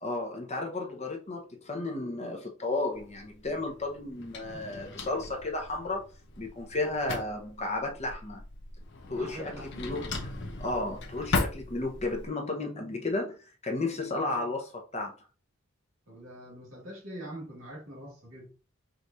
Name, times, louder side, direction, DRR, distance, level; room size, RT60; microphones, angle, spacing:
voice 1, 0.0-6.0 6.4-8.4 9.1-10.3 10.6-15.1, left 2 dB, 30° left, 1.0 m, -33 dB
Drawer open or close, 2.9-12.3, left 3 dB, 55° left, 0.8 m, -38 dB
voice 2, 9.1-9.9 16.1-18.6, right 1 dB, 70° right, 1.9 m, -44 dB
5.1 x 3.1 x 2.7 m
head